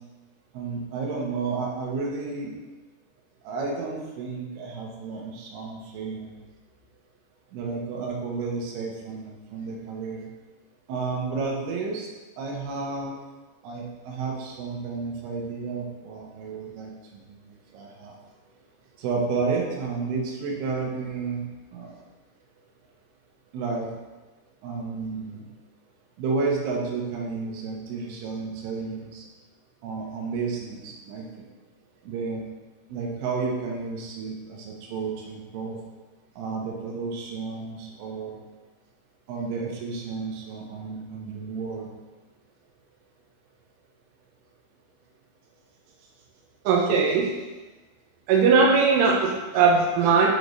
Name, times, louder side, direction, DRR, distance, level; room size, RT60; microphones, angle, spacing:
voice 1, 0.5-2.5 3.4-6.3 7.5-10.3 10.9-12.1 12.4-13.2 13.6-16.9 17.3-18.2 19.0-21.4 21.7-22.0 23.5-23.9 24.6-25.4 26.2-29.3 29.8-31.5 32.0-32.4 32.9-35.8 36.4-38.4 39.3-41.9, right 4 dB, 75° right, -2 dB, 2.5 m, -31 dB
voice 2, 46.7-47.3 48.3-50.3, right 5 dB, 90° right, -2 dB, 2.4 m, -19 dB
7.6 x 3.4 x 4.0 m, 1.2 s
omnidirectional pair, 5.7 m